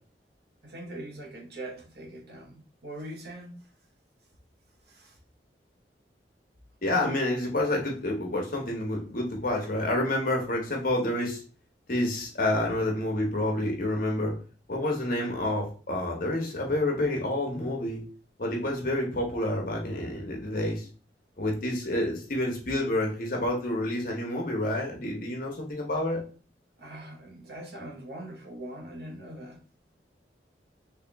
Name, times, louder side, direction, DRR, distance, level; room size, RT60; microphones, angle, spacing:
voice 1, 0.6-3.5 4.9-5.2 6.8-7.2 26.8-29.6, right 1 dB, 60° right, 1 dB, 1.0 m, -42 dB
voice 2, 6.8-11.4 11.9-14.3 14.7-18.0 18.4-20.9 21.4-26.2, left 1 dB, 55° left, 0 dB, 1.1 m, -28 dB
3.4 x 3.0 x 3.4 m, 0.38 s
head